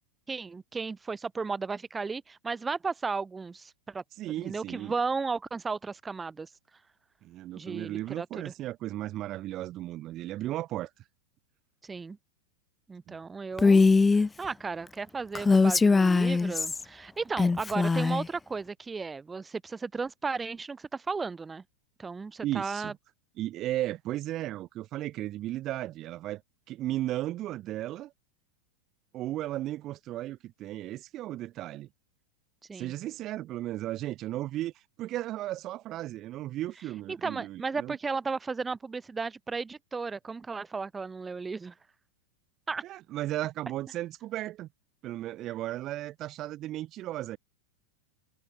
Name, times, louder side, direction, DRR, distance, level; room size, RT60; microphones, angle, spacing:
voice 1, 0.3-4.0 4.4-6.5 7.6-8.5 11.8-12.2 12.9-21.6 22.0-22.9 32.7-32.9 37.1-41.7 42.7-42.8, right 4 dB, 15° right, 1.6 m, -35 dB
voice 2, 4.2-4.9 7.2-10.9 13.1-13.2 22.4-22.9 23.4-26.4 26.7-28.1 29.1-31.9 32.7-34.7 35.0-38.0 42.8-44.7 45.0-47.4, right 14 dB, 35° right, 4.4 m, -35 dB
Female speech woman speaking, 13.6-14.3 15.4-16.8 17.4-18.3, left 4 dB, 10° left, 0.8 m, -21 dB
figure-of-eight pair, 90°, 0 cm